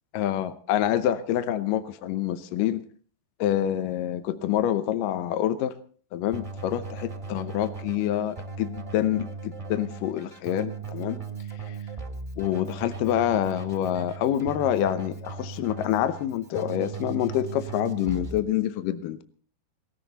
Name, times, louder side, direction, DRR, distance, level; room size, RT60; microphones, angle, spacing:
voice 1, 0.1-2.8 3.4-5.7 6.1-11.2 11.7-11.8 12.4-19.2, left 11 dB, 75° left, 12 dB, 2.4 m, -27 dB
Keyboard (musical), 6.3-18.4, right 4 dB, 25° right, 0.7 m, -38 dB
18.5 x 16.5 x 4.1 m, 0.42 s
omnidirectional pair, 4.3 m